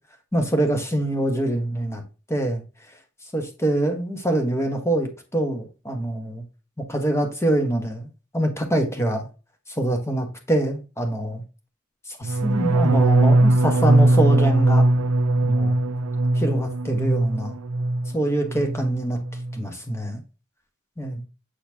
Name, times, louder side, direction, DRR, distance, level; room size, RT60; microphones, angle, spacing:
voice 1, 0.3-2.0 2.3-2.6 3.3-6.4 6.8-8.1 8.3-9.3 9.8-11.4 12.1-14.9 15.4-15.8 16.3-17.6 18.1-19.2 19.5-20.2 21.0-21.2, right 1 dB, 15° left, 1.4 m, -24 dB
sound 1, 12.2-18.1 18.4-18.9 19.2-19.6, right 2 dB, 80° right, 0.5 m, -20 dB
8.3 x 4.2 x 2.9 m
head